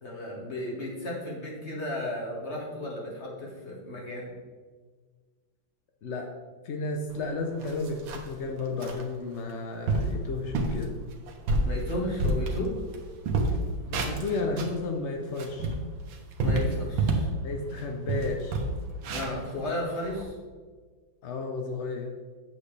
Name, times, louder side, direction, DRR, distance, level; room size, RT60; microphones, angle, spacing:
voice 1, 0.0-4.3 11.6-12.8 16.4-17.3 19.1-20.4, left 1 dB, 35° left, -3 dB, 2.0 m, -34 dB
voice 2, 6.6-10.9 13.9-15.7 17.4-18.6 21.2-22.2, left 3 dB, 65° left, 3 dB, 0.7 m, -33 dB
sound 1, 7.1-7.2 7.6-8.4 8.8-9.0 9.5-9.6 9.9-10.2 10.5-10.8 11.3-13.0 13.2-14.8 15.2-17.4 17.7-17.8 18.1-20.2, right 2 dB, 80° right, 1.7 m, -28 dB
8.3 x 7.5 x 3.3 m, 1.5 s
omnidirectional pair, 2.1 m